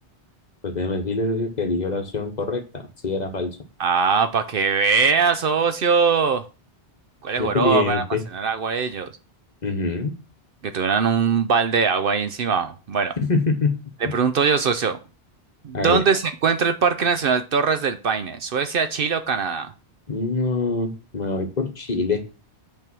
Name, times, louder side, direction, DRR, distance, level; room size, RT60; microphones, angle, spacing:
voice 1, 0.6-3.6 7.4-8.2 9.6-10.1 13.2-13.8 14.0-14.1 15.7-16.0 20.1-22.2, left 3 dB, 40° left, 1.0 m, -24 dB
voice 2, 3.8-6.5 7.2-8.0 8.3-9.1 10.6-13.1 14.0-15.0 15.6-19.7, right 5 dB, 60° right, 0.7 m, -21 dB
8.4 x 3.5 x 6.0 m
omnidirectional pair, 1.2 m